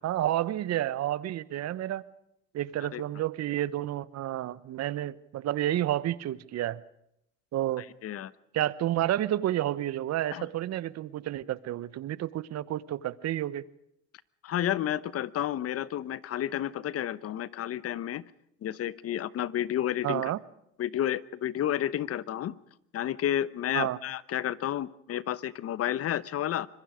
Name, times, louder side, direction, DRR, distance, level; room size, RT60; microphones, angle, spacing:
voice 1, 0.0-2.0 2.5-6.8 7.5-7.8 8.5-13.6 20.0-20.4 23.7-24.0, right 13 dB, 45° right, 18 dB, 1.1 m, -30 dB
voice 2, 7.8-8.3 10.3-10.5 14.4-18.2 18.6-20.3 20.8-22.5 22.9-26.7, left 11 dB, 40° left, 18 dB, 1.0 m, -31 dB
25.5 x 22.5 x 5.1 m, 0.77 s
supercardioid pair, 95°, 37 cm